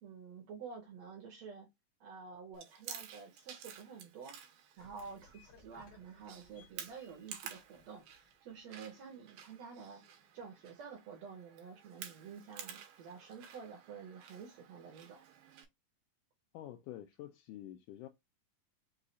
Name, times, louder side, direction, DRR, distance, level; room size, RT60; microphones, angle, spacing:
voice 1, 0.0-1.7 2.0-4.4 4.8-10.0 10.3-15.2, right 6 dB, 70° right, 1.6 m, -50 dB
Chewing mastication, 2.5-15.7, right 8 dB, 85° right, 2.6 m, -52 dB
sound 1, 4.8-8.8, left 3 dB, 65° left, 1.1 m, -64 dB
voice 2, 16.5-18.1, left 13 dB, 80° left, 1.8 m, -48 dB
5.6 x 2.3 x 4.0 m
omnidirectional pair, 4.0 m